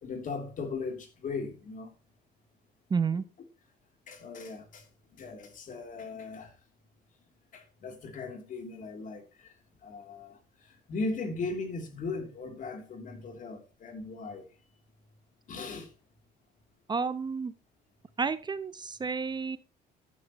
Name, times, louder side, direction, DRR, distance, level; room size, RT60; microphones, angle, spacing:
voice 1, 0.0-1.9 4.1-4.9 5.2-6.5 7.5-9.5 9.8-14.5 15.5-15.9, left 3 dB, 50° left, 3.0 m, -38 dB
voice 2, 2.9-3.2 16.9-17.5 18.2-19.6, right 5 dB, 25° right, 0.7 m, -30 dB
11.5 x 11.0 x 3.0 m
cardioid pair, 110°, 17 cm